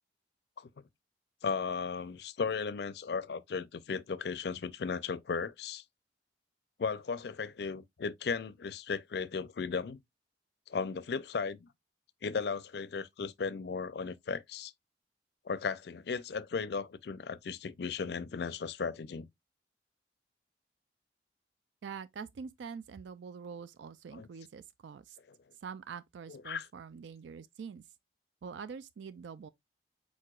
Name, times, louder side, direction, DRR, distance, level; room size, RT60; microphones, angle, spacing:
voice 1, 1.4-5.8 6.8-10.0 10.7-11.7 12.2-14.7 15.4-19.3 24.1-24.3 26.3-26.7, left 5 dB, 65° left, 0.4 m, -36 dB
voice 2, 21.8-25.2 25.6-27.8 28.4-29.5, right 6 dB, 80° right, 0.4 m, -45 dB
4.7 x 4.2 x 2.3 m
head